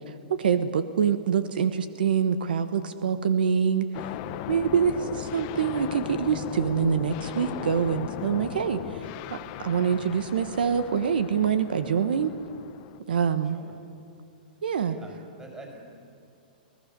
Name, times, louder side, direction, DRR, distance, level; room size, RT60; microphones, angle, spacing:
voice 1, 0.1-3.9 4.5-9.0 9.3-12.3 13.1-13.6 14.6-14.9, right 7 dB, 80° right, 11 dB, 1.1 m, -25 dB
sound 1, 3.9-13.0, left 13 dB, 40° left, 0.9 m, -37 dB
voice 2, 13.4-13.8 14.9-15.8, right 2 dB, 10° right, 0 dB, 5.2 m, -46 dB
24.5 x 18.0 x 6.8 m, 2.6 s
hypercardioid pair, 150°, 5 cm